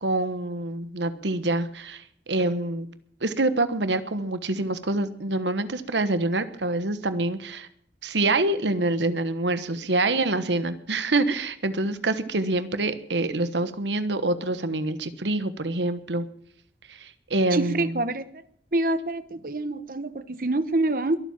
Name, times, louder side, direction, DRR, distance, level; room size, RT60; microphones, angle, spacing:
voice 1, 0.0-2.9 3.2-7.7 8.0-16.2 16.9-18.0, right 2 dB, 85° right, 12 dB, 1.3 m, -26 dB
voice 2, 17.5-18.2 18.7-21.2, right 2 dB, 50° right, 14 dB, 1.0 m, -26 dB
22.0 x 7.6 x 7.3 m, 0.64 s
head